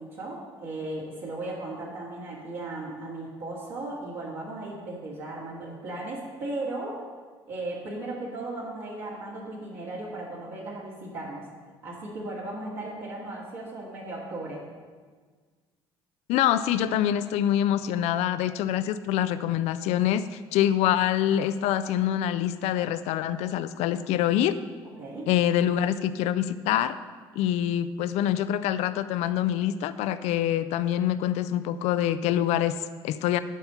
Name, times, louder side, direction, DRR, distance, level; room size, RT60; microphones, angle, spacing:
voice 1, 0.0-7.0 7.5-11.5 11.8-14.7 25.0-25.3, right 2 dB, 55° right, -7 dB, 2.2 m, -36 dB
voice 2, 16.3-24.6 25.3-27.0 27.4-33.4, left 11 dB, 50° left, 13 dB, 0.4 m, -25 dB
12.0 x 5.6 x 6.7 m, 1.5 s
figure-of-eight pair, 55°, 14 cm